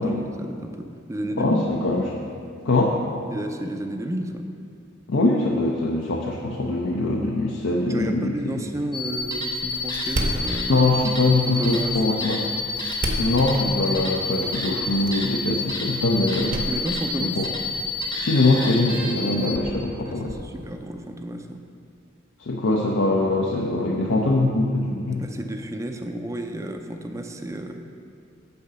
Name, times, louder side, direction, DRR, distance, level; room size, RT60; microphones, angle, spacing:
voice 1, 0.0-1.6 3.3-4.5 7.9-10.9 11.5-12.5 16.7-17.5 20.0-21.6 25.2-27.8, right 1 dB, 15° right, 5 dB, 0.4 m, -32 dB
voice 2, 1.4-2.0 2.6-3.0 5.1-8.6 10.7-12.4 13.2-16.6 17.2-17.4 18.2-20.3 22.4-25.2, left 2 dB, 70° left, -1 dB, 0.6 m, -22 dB
sound 1, 8.9-19.7 20.3-20.4, left 3 dB, 20° left, 0.9 m, -29 dB
Door, 9.2-18.2, right 1 dB, 45° right, 0.7 m, -35 dB
6.9 x 4.9 x 6.6 m, 2.3 s
head